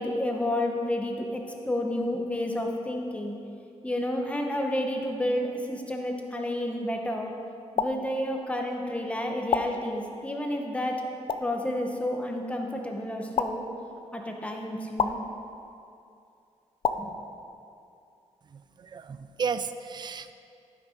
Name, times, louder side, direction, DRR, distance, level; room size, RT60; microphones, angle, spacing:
voice 1, 0.0-3.4 3.8-7.3 7.8-11.1 11.4-13.6 14.1-15.2 17.0-17.1, left 1 dB, 10° left, 2 dB, 0.9 m, -30 dB
sound 1, 7.8-7.9 9.5-9.6 11.3-11.4 13.3-13.5 15.0-15.1 16.8-17.0, left 6 dB, 50° left, 0.5 m, -25 dB
voice 2, 18.9-20.3, right 6 dB, 40° right, 11 dB, 0.4 m, -32 dB
12.0 x 6.3 x 5.0 m, 2.6 s
wide cardioid pair, 155°, 12 cm